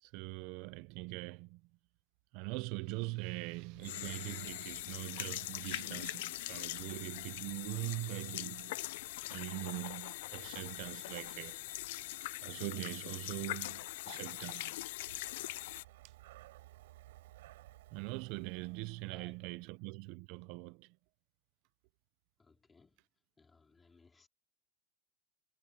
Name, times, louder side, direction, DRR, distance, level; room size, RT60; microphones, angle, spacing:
voice 1, 0.0-1.7 2.3-8.8 9.3-11.6 12.1-14.8 17.9-21.0, right 23 dB, 60° right, 0.8 m, -42 dB
sound 1, 3.7-15.8, left 17 dB, 80° left, 0.6 m, -42 dB
Breathing, 14.9-19.8, right 17 dB, 90° right, 4.5 m, -58 dB
voice 2, 19.0-19.6 22.4-23.1 23.4-24.3, left 4 dB, 15° left, 4.4 m, -64 dB
supercardioid pair, 135°, 0 cm